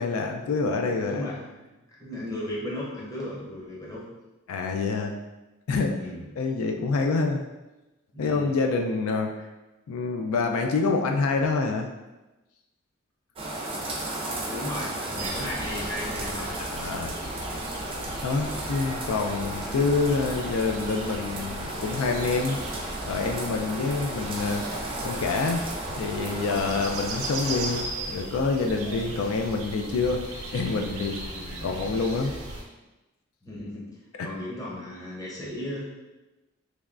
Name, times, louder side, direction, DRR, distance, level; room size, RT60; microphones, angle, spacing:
voice 1, 0.0-1.3 4.5-5.2 5.7-6.0 6.4-7.4 8.2-9.3 9.9-11.9 16.6-17.1 18.2-22.6 23.1-24.6 25.0-25.6 25.9-30.2 30.5-31.2 31.6-32.3 34.2-34.3, left 4 dB, 80° left, 3 dB, 0.3 m, -27 dB
voice 2, 0.9-1.6 2.0-4.1 6.0-6.3 8.1-8.5 14.4-16.6 26.5-26.8 31.3-31.6 33.4-33.9 34.2-35.9, left 1 dB, 15° left, -5 dB, 0.6 m, -36 dB
sound 1, 13.4-27.8, right 1 dB, 25° right, 0.5 m, -34 dB
sound 2, 15.2-32.6, right 2 dB, 85° right, 0.7 m, -37 dB
3.3 x 3.1 x 2.4 m, 1.1 s
head